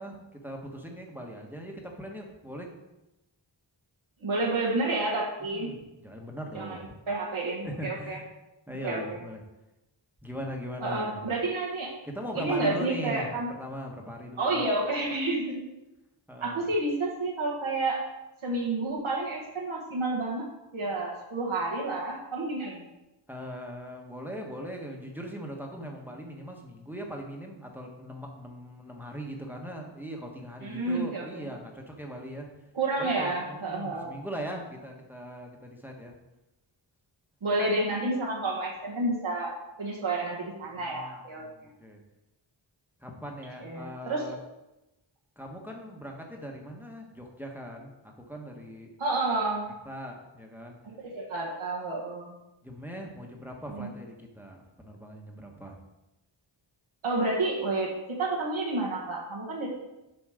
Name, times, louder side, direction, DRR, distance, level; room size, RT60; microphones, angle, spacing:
voice 1, 0.0-2.7 5.5-6.9 7.6-8.2 8.7-9.4 10.2-11.2 12.0-13.3 13.6-14.7 16.3-16.7 23.3-32.5 33.0-36.1 40.7-42.0 43.0-44.4 45.4-48.9 49.8-50.8 52.6-55.8, equal, 5° right, 1 dB, 1.3 m, -40 dB
voice 2, 4.2-5.8 6.5-6.8 7.1-8.2 8.8-9.2 10.8-11.9 12.3-13.5 14.4-15.6 16.4-18.0 18.4-20.4 20.7-22.9 30.6-31.2 32.7-34.2 37.4-41.7 43.6-44.2 49.0-49.7 50.8-52.4 53.7-53.9 57.0-59.7, right 2 dB, 85° right, -3 dB, 1.5 m, -30 dB
7.7 x 5.3 x 4.9 m, 0.97 s
wide cardioid pair, 70°, 47 cm